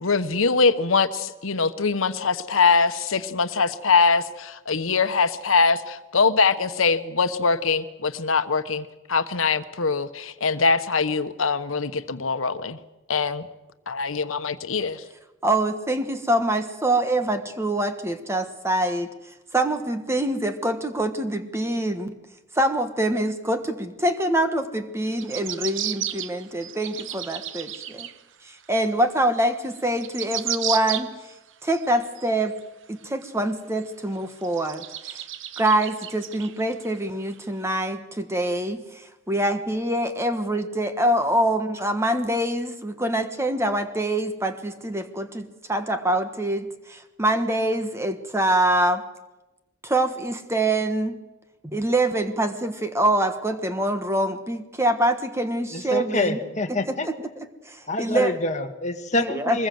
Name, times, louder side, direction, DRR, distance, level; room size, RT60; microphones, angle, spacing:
voice 1, 0.0-12.8 13.1-13.5 13.9-15.0, left 4 dB, 80° left, 11 dB, 1.1 m, -22 dB
voice 2, 15.4-19.1 19.5-22.1 22.5-28.1 28.4-31.1 31.6-32.5 32.9-35.2 35.6-38.8 39.3-49.0 49.8-51.2 51.6-56.4 56.7-57.1 57.7-58.4 59.2-59.6, right 1 dB, 15° right, 8 dB, 1.4 m, -25 dB
sound 1, 25.0-28.2 28.6-28.7 29.5-29.6 29.8-31.3 31.7-32.6 33.2-33.3 33.8-33.9 34.4-36.9 37.3-37.4, right 11 dB, 65° right, 0.9 m, -33 dB
voice 3, 55.7-57.1 57.9-59.7, left 2 dB, 35° left, 7 dB, 1.5 m, -26 dB
23.0 x 20.5 x 7.8 m, 1.1 s
head